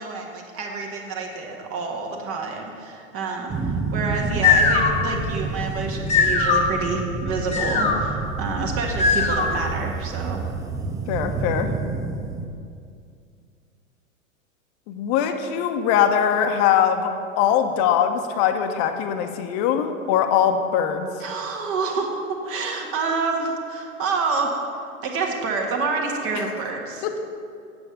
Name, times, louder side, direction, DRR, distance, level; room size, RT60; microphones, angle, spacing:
voice 1, 0.0-10.4 21.2-27.2, right 4 dB, 35° right, 1 dB, 1.6 m, -28 dB
sound 1, 3.5-12.5, right 4 dB, 10° right, 0.4 m, -29 dB
sound 2, 4.1-9.7, left 5 dB, 15° left, 1.1 m, -22 dB
voice 2, 11.1-11.7 14.9-17.1 17.4-21.1 27.0-27.2, left 9 dB, 35° left, 7 dB, 0.9 m, -21 dB
8.8 x 7.6 x 6.7 m, 2.4 s
figure-of-eight pair, 95°, 41 cm